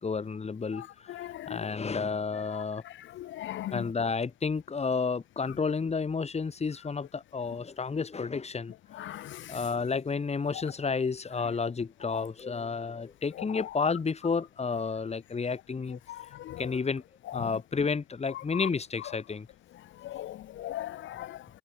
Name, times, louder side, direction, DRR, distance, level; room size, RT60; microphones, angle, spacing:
voice 1, 0.0-2.8 3.7-8.7 9.5-16.0 16.6-17.0 17.3-19.5, left 5 dB, 30° left, 3.0 m, -31 dB
voice 2, 1.2-1.6 3.4-3.7 9.0-9.4 16.5-16.6 20.1-21.3, left 13 dB, 75° left, 0.9 m, -38 dB
cardioid pair, 90°, 20 cm